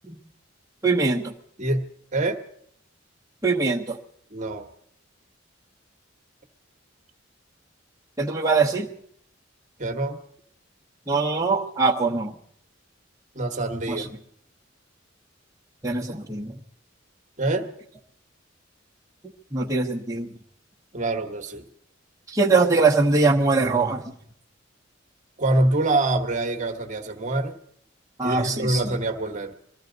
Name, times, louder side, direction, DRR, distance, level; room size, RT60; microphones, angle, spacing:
voice 1, 0.8-1.3 3.4-4.0 8.2-8.9 11.1-12.3 13.9-14.0 15.8-16.5 19.5-20.3 22.3-24.0 28.2-28.8, right 3 dB, 15° right, -5 dB, 1.0 m, -22 dB
voice 2, 4.3-4.7 9.8-10.2 13.3-14.1 17.4-17.7 20.9-21.6 25.4-27.5 28.2-29.5, right 2 dB, 40° right, 5 dB, 1.2 m, -25 dB
22.5 x 14.5 x 3.9 m, 0.64 s
head